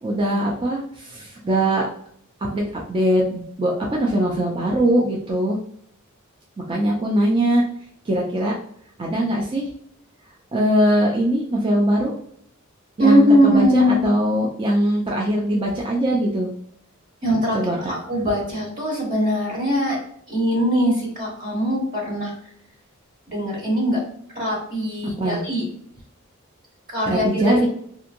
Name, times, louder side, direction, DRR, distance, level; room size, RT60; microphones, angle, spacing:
voice 1, 0.0-1.9 2.5-2.6 2.9-5.6 6.7-7.6 8.0-8.5 9.0-9.7 10.5-12.1 13.0-16.5 17.5-17.8 25.2-25.4 27.0-27.7, right 1 dB, 25° right, -2 dB, 0.4 m, -21 dB
voice 2, 13.0-14.1 17.2-17.6 17.9-20.0 20.3-22.3 23.3-24.0 24.3-25.7 26.9-27.7, equal, 45° right, -4 dB, 1.2 m, -21 dB
2.8 x 2.6 x 2.5 m, 0.64 s
head